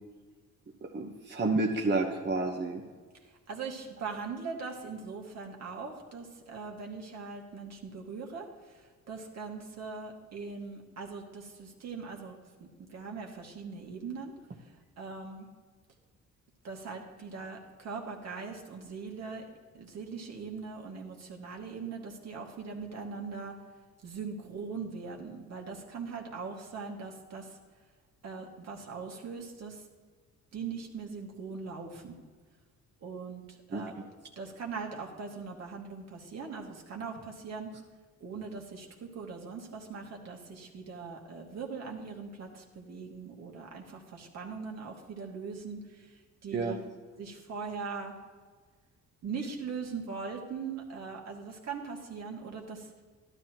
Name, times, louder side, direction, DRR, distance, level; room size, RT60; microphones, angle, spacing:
voice 1, 0.8-2.8 33.7-33.8 46.5-46.7, right 3 dB, 35° right, 0 dB, 1.2 m, -30 dB
voice 2, 3.5-12.4 12.8-14.3 15.0-15.5 16.6-19.5 19.7-23.6 24.0-27.6 28.2-29.8 30.5-32.2 33.0-33.4 33.7-33.9 34.4-37.7 38.2-46.8 47.2-48.2 49.2-52.9, right 5 dB, 60° right, 1 dB, 2.1 m, -41 dB
13.5 x 12.0 x 3.0 m, 1.5 s
cardioid pair, 90°, 30 cm